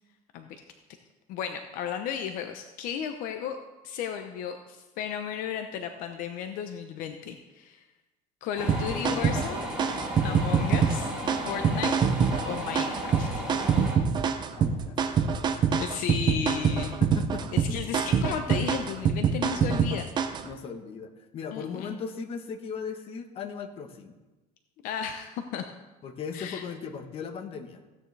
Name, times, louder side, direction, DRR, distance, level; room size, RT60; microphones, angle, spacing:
voice 1, 1.3-3.6 3.8-7.8 8.4-9.7 10.2-11.1 11.5-11.9 12.5-13.4 15.8-16.9 17.5-20.1 21.5-21.9 24.8-25.6 26.3-26.7, left 8 dB, 55° left, 6 dB, 0.8 m, -34 dB
sound 1, 8.6-14.0, equal, 5° right, 3.1 m, -35 dB
voice 2, 8.7-9.4 14.6-15.0 16.8-17.5 20.4-24.2 26.0-27.8, left 6 dB, 35° left, 6 dB, 1.0 m, -38 dB
sound 2, 8.7-20.5, right 6 dB, 25° right, 0.6 m, -25 dB
15.5 x 9.2 x 3.3 m, 1.1 s
cardioid pair, 155°, 16 cm